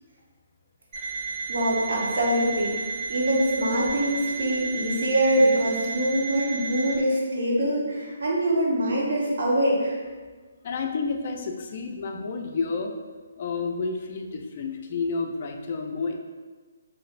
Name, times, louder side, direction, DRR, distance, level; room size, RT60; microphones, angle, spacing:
Alarm, 0.9-7.0, right 4 dB, 10° right, 1.3 m, -32 dB
voice 1, 1.5-10.0, right 1 dB, 60° right, -3 dB, 0.8 m, -24 dB
voice 2, 10.6-12.9 13.4-16.2, left 4 dB, 35° left, 3 dB, 0.3 m, -30 dB
3.2 x 2.6 x 2.4 m, 1.4 s
hypercardioid pair, 170°, 0 cm